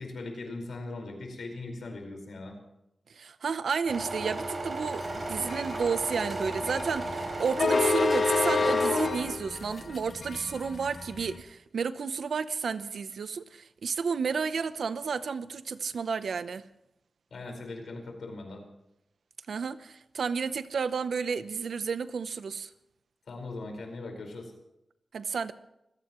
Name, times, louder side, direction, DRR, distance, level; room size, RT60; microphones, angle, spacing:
voice 1, 0.0-2.6 17.3-18.6 23.3-24.5, left 2 dB, 85° left, 3 dB, 5.0 m, -39 dB
voice 2, 3.2-5.0 5.3-16.6 19.5-22.7 25.1-25.5, right 5 dB, 85° right, 13 dB, 0.8 m, -31 dB
sound 1, 3.9-9.1, right 2 dB, 40° right, 4.3 m, -35 dB
sound 2, 5.1-11.3, left 4 dB, 60° left, 2.1 m, -28 dB
26.5 x 17.0 x 3.1 m, 0.86 s
wide cardioid pair, 160°, 0 cm